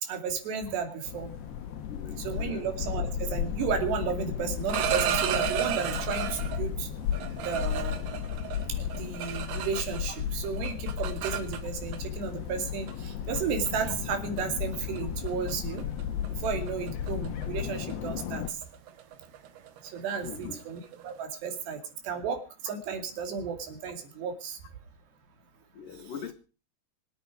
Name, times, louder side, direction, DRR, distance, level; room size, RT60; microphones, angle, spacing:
voice 1, 0.0-1.3 2.1-6.9 7.5-8.0 8.7-15.8 16.4-18.4 19.9-24.6, right 6 dB, 90° right, 6 dB, 4.7 m, -33 dB
sound 1, 1.1-18.5, left 9 dB, 80° left, 3.4 m, -34 dB
voice 2, 1.9-2.6 20.2-20.6 25.7-26.3, left 7 dB, 60° left, 8 dB, 2.9 m, -41 dB
sound 2, 4.5-6.6 7.1-10.2 10.4-12.0 12.9-13.0 13.4-13.7 14.1-14.4 14.7-15.0 15.3-15.5 15.8-21.2, right 10 dB, 70° right, 3.1 m, -33 dB
24.5 x 8.9 x 4.9 m, 0.35 s
omnidirectional pair, 4.7 m